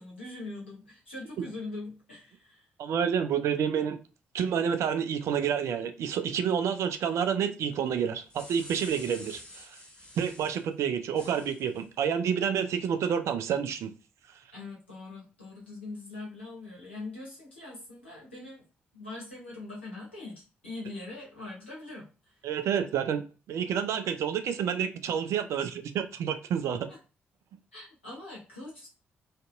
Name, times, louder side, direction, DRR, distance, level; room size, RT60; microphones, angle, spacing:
voice 1, 0.0-2.6 14.5-18.6 18.9-22.4 26.9-27.0 27.7-28.9, left 2 dB, 85° left, 0.8 m, -42 dB
voice 2, 2.8-4.0 4.3-9.8 10.2-13.9 22.4-26.9, right 8 dB, 55° right, 0.4 m, -29 dB
sound 1, 8.0-10.6 11.1-11.8, left 1 dB, 15° left, 1.3 m, -48 dB
2.6 x 2.5 x 2.2 m
figure-of-eight pair, 40°, 6 cm